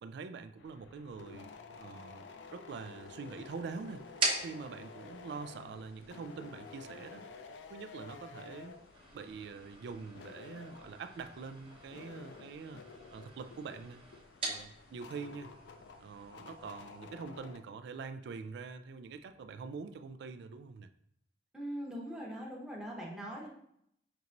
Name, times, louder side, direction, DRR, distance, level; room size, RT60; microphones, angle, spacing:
voice 1, 0.0-4.1 4.4-7.2 7.7-8.7 9.1-12.8 13.1-14.0 14.5-15.5 16.0-20.9, right 5 dB, 65° right, 11 dB, 0.3 m, -45 dB
sound 1, 0.6-17.6, left 4 dB, 80° left, 0.4 m, -52 dB
sound 2, 2.7-17.0, right 3 dB, 30° right, 0.9 m, -44 dB
voice 2, 21.5-23.5, equal, 5° right, -3 dB, 0.8 m, -41 dB
5.4 x 2.9 x 2.5 m, 0.72 s
head